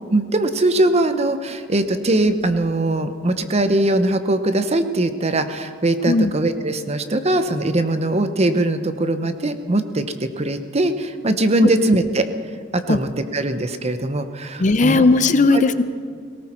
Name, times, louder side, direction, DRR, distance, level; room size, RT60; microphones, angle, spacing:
voice 1, 0.1-12.3 12.7-15.1 15.5-15.6, right 1 dB, 35° right, 9 dB, 0.8 m, -21 dB
voice 2, 14.6-15.8, left 3 dB, 40° left, 12 dB, 0.5 m, -16 dB
18.0 x 18.0 x 4.4 m, 2.2 s
head